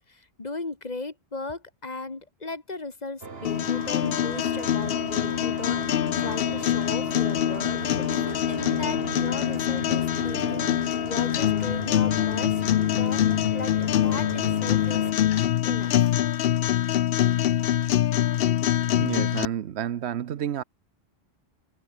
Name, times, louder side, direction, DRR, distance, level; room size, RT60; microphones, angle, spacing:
voice 1, 0.1-10.7 11.1-15.1 15.6-16.0, left 3 dB, 40° left, 1.9 m, -37 dB
sound 1, 3.2-15.1, right 4 dB, 65° right, 2.2 m, -37 dB
sound 2, 3.4-19.5, left 12 dB, 70° left, 0.8 m, -24 dB
voice 2, 19.0-20.6, right 10 dB, 85° right, 1.1 m, -30 dB
omnidirectional pair, 1.1 m